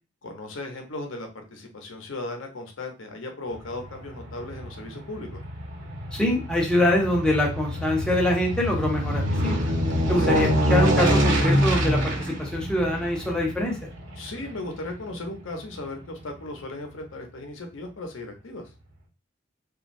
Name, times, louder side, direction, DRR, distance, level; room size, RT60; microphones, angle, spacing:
voice 1, 0.2-5.4 10.1-10.5 14.1-18.7, left 2 dB, 75° left, 3 dB, 0.7 m, -37 dB
Aircraft, 3.5-16.0 16.4-16.5, equal, 65° right, 1.0 m, -26 dB
voice 2, 6.1-9.7 10.1-13.8, left 1 dB, 5° left, -2 dB, 0.6 m, -24 dB
3.0 x 2.4 x 2.5 m, 0.31 s
head